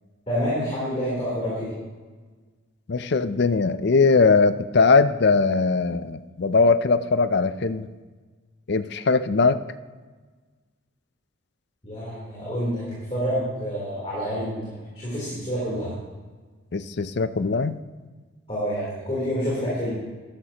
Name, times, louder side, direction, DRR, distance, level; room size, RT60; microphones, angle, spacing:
voice 1, 0.3-1.7 11.8-15.9 18.5-19.9, equal, 25° left, -8 dB, 3.5 m, -28 dB
voice 2, 2.9-7.9 8.7-9.6 16.7-17.8, left 4 dB, 50° left, 13 dB, 0.5 m, -20 dB
13.0 x 12.0 x 2.9 m, 1.4 s
head